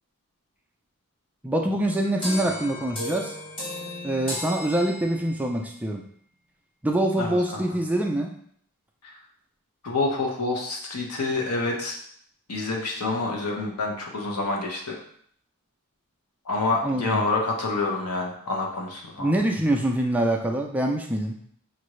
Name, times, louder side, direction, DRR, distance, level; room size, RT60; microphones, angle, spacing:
voice 1, 1.4-3.4 4.0-6.0 6.8-8.3 16.8-17.2 19.2-21.4, right 1 dB, 5° right, 1 dB, 0.3 m, -25 dB
sound 1, 2.2-5.5, left 1 dB, 25° left, 1.3 m, -35 dB
voice 2, 7.2-7.6 9.0-9.1 9.8-12.0 12.5-15.0 16.4-19.3, left 3 dB, 85° left, 0 dB, 0.9 m, -27 dB
5.5 x 2.6 x 3.1 m, 0.65 s
head